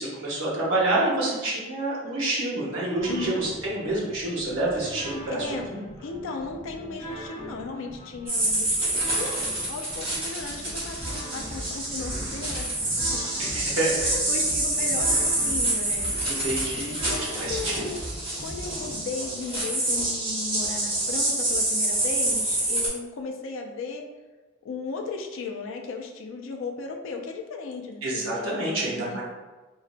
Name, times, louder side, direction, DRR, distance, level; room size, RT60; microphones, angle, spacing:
voice 1, 0.0-5.4 5.7-5.8 13.4-14.0 16.3-17.9 28.0-29.2, right 2 dB, 70° right, -5 dB, 0.9 m, -28 dB
sound 1, 3.0-19.0, equal, 15° left, 0.9 m, -40 dB
voice 2, 3.1-3.4 4.7-5.0 5.3-5.7 6.0-12.9 13.5-13.6 14.0-16.4 16.8-18.1 18.4-24.1 24.6-29.2, left 4 dB, 65° left, 2 dB, 0.3 m, -36 dB
sound 2, 8.3-22.9, right 1 dB, 30° right, 1.1 m, -27 dB
3.8 x 2.0 x 2.5 m, 1.2 s
head